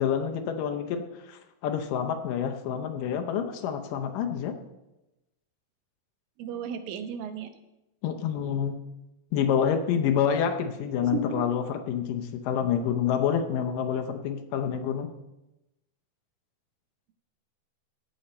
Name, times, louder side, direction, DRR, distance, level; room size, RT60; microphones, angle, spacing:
voice 1, 0.0-4.6 8.0-8.8 9.3-15.1, left 8 dB, 75° left, 6 dB, 2.3 m, -28 dB
voice 2, 6.4-7.5 11.0-11.4, right 6 dB, 80° right, 9 dB, 2.5 m, -34 dB
17.0 x 6.4 x 4.3 m, 0.96 s
omnidirectional pair, 4.0 m